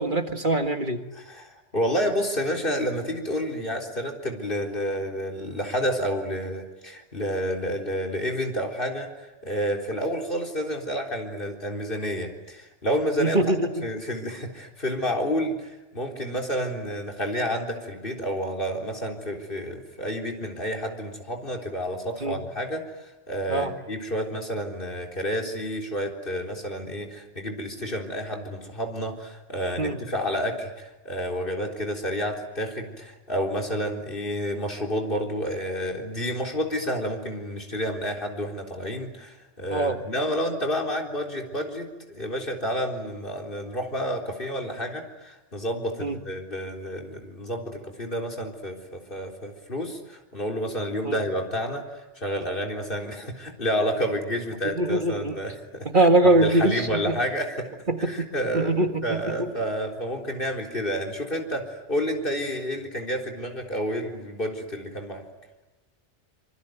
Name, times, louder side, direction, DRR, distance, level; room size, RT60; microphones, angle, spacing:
voice 1, 0.0-1.0 13.2-13.9 22.2-22.4 23.5-23.7 29.8-30.0 39.7-40.0 46.0-46.2 51.0-51.2 54.8-55.4 55.9-57.2 57.9-58.3 58.5-59.5, right 2 dB, 45° right, 6 dB, 2.0 m, -23 dB
voice 2, 1.1-13.4 13.8-57.7 58.0-65.2, equal, 50° left, 2 dB, 4.1 m, -30 dB
26.5 x 24.0 x 9.3 m, 1.1 s
omnidirectional pair, 1.2 m